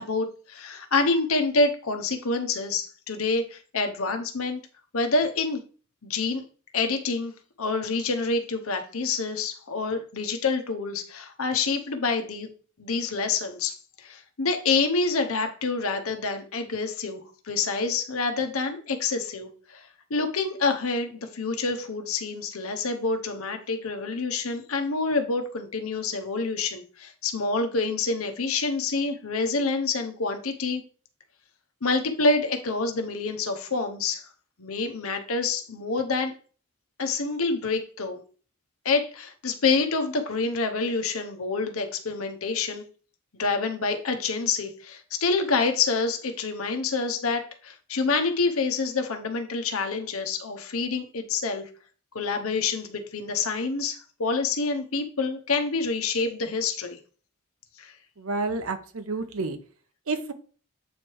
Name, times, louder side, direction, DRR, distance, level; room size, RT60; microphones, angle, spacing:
voice 1, 0.0-4.6 4.9-5.6 6.0-6.4 6.7-7.3 7.6-12.5 12.8-17.2 17.4-30.8 31.8-34.3 34.6-36.3 37.0-38.2 38.8-42.8 43.4-51.7 52.1-57.0 57.8-57.9, left 4 dB, 90° left, 5 dB, 1.0 m, -27 dB
voice 2, 58.2-59.6 60.1-60.3, right 3 dB, 80° right, 9 dB, 0.8 m, -29 dB
8.1 x 3.3 x 4.5 m, 0.40 s
head